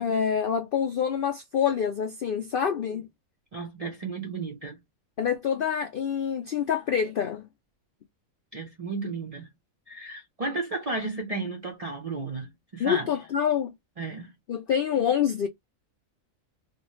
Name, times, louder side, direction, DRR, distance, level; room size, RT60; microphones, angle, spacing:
voice 1, 0.0-3.1 5.2-7.5 12.8-13.7 14.5-15.5, left 8 dB, 70° left, 0.5 m, -26 dB
voice 2, 3.5-4.8 8.5-9.5 9.9-13.1 14.0-14.3, right 3 dB, 45° right, 0.4 m, -33 dB
2.6 x 2.4 x 3.0 m
omnidirectional pair, 1.4 m